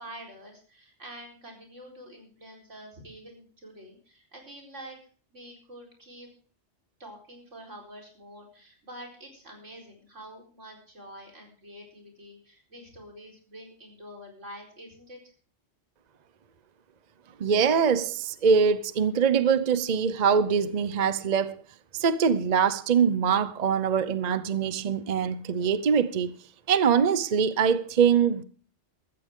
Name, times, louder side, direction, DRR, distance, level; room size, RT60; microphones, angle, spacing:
voice 1, 0.0-5.0 5.3-6.3 7.0-15.2, equal, 80° right, 4.7 m, -46 dB
voice 2, 17.4-21.6 22.0-26.4 26.7-28.4, right 6 dB, 45° right, 0.7 m, -23 dB
14.5 x 14.5 x 3.7 m
omnidirectional pair, 1.2 m